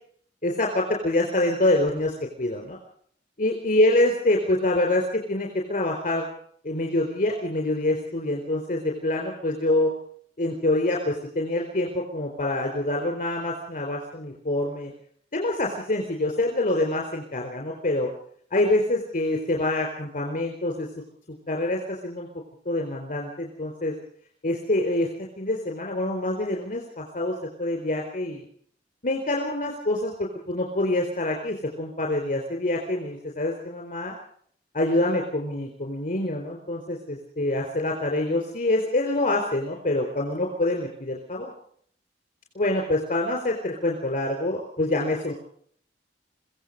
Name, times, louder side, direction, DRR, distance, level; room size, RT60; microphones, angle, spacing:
voice 1, 0.4-2.8 3.4-6.3 6.6-9.9 10.4-14.9 15.3-18.1 18.5-20.9 21.5-22.3 22.7-23.9 24.4-25.1 25.4-28.5 29.0-30.1 30.5-34.1 34.7-41.5 42.5-45.3, left 1 dB, 40° left, 1 dB, 4.2 m, -26 dB
25.5 x 16.0 x 6.7 m, 0.63 s
head